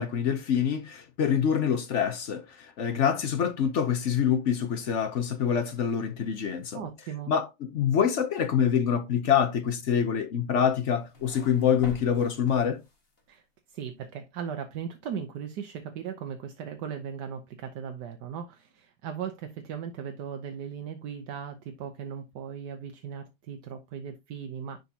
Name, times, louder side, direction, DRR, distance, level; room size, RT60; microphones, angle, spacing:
voice 1, 0.0-6.8 7.3-12.8, left 8 dB, 55° left, 0.8 m, -26 dB
voice 2, 6.7-7.3 13.3-24.8, right 7 dB, 65° right, 1.3 m, -38 dB
sound 1, 10.6-13.2, left 3 dB, 30° left, 1.8 m, -47 dB
10.5 x 4.0 x 2.8 m
omnidirectional pair, 2.1 m